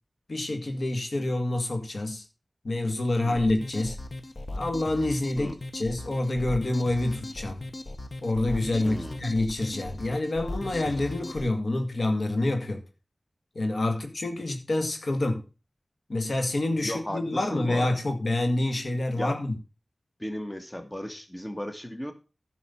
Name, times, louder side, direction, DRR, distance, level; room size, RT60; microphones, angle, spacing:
voice 1, 0.3-2.2 2.6-4.0 4.6-7.6 8.2-12.8 13.6-15.4 16.1-19.5, left 2 dB, 75° left, 2.1 m, -27 dB
sound 1, 3.3-11.5, left 2 dB, 55° left, 1.0 m, -38 dB
voice 2, 8.8-9.2 16.8-17.9 19.2-19.4 20.2-22.1, equal, 15° left, 1.6 m, -35 dB
11.5 x 6.0 x 5.7 m
cardioid pair, 40°, 0 cm